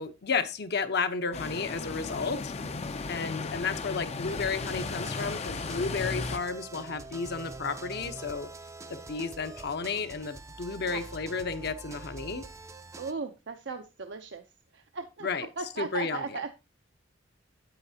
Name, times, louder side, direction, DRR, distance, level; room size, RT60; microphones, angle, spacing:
voice 1, 0.0-2.5 3.1-8.5 8.9-12.4 15.2-15.5 15.8-16.4, left 5 dB, 60° left, 8 dB, 0.9 m, -32 dB
sound 1, 1.3-6.4, left 4 dB, 35° left, 0.5 m, -35 dB
sound 2, 4.2-13.1, right 3 dB, 15° right, 0.5 m, -45 dB
voice 2, 13.0-14.4 14.7-15.3 15.6-16.5, right 4 dB, 65° right, 6 dB, 0.6 m, -37 dB
8.9 x 8.1 x 2.8 m, 0.28 s
head